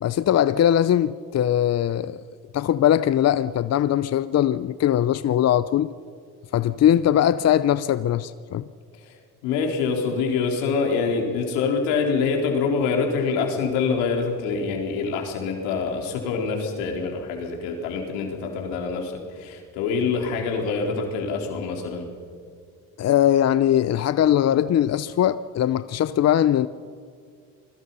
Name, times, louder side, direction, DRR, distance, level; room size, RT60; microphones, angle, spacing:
voice 1, 0.0-2.2 2.5-5.9 6.5-8.6 23.0-26.7, left 11 dB, 45° left, 0.7 m, -20 dB
voice 2, 9.4-22.1, left 5 dB, 90° left, 4.0 m, -25 dB
28.0 x 21.0 x 5.6 m
supercardioid pair, 75°, 35 cm